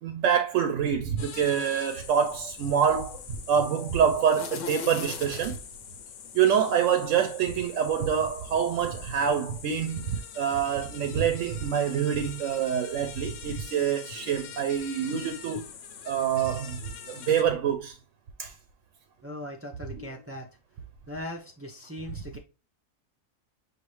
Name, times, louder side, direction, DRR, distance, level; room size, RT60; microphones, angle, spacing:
voice 1, 0.0-3.2 3.5-5.6 6.3-15.7 16.1-16.8 17.1-17.9 18.4-18.5 20.0-20.1, right 8 dB, 75° right, 0.9 m, -26 dB
sound 1, 1.2-17.4, left 7 dB, 70° left, 1.0 m, -43 dB
voice 2, 19.2-20.5 21.1-22.4, left 1 dB, 25° right, 0.3 m, -39 dB
6.4 x 2.6 x 3.1 m
omnidirectional pair, 1.4 m